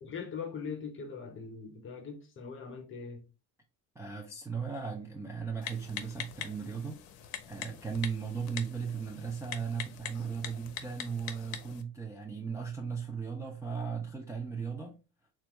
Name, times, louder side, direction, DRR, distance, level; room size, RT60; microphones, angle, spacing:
voice 1, 0.0-3.3, left 5 dB, 30° left, 0.8 m, -41 dB
voice 2, 4.0-7.0 7.5-15.0, right 6 dB, 10° right, 0.4 m, -37 dB
Typing, 5.6-11.8, left 9 dB, 65° left, 0.6 m, -43 dB
3.2 x 2.3 x 2.9 m
supercardioid pair, 100°, 38 cm